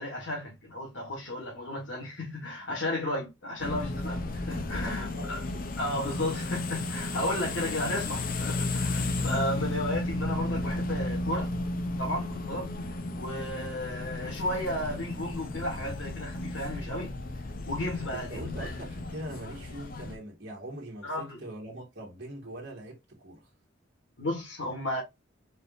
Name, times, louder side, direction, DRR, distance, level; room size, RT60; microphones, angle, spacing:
voice 1, 0.0-5.4 5.8-11.5 12.0-12.7 13.1-17.1 17.7-18.7 21.0-21.4 24.2-25.0, left 1 dB, 90° left, 1.5 m, -33 dB
sound 1, 3.6-20.2, left 2 dB, 50° left, 0.6 m, -34 dB
voice 2, 4.8-5.6 18.1-23.5, right 1 dB, 60° right, 1.5 m, -42 dB
4.2 x 3.4 x 2.5 m
head